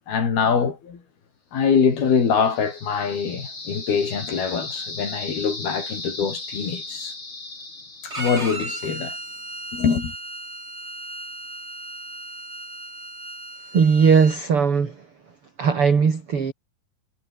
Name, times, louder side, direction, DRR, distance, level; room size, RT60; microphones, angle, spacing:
voice 1, 0.1-1.0 1.5-7.1 8.0-9.2 9.7-10.1, left 6 dB, 70° left, 6.4 m, -23 dB
sound 1, 1.9-8.9, left 2 dB, 30° left, 7.2 m, -36 dB
Bowed string instrument, 8.1-14.4, right 2 dB, 15° right, 4.9 m, -35 dB
voice 2, 13.7-14.9 15.6-16.5, right 6 dB, 40° right, 3.4 m, -18 dB
omnidirectional pair, 4.5 m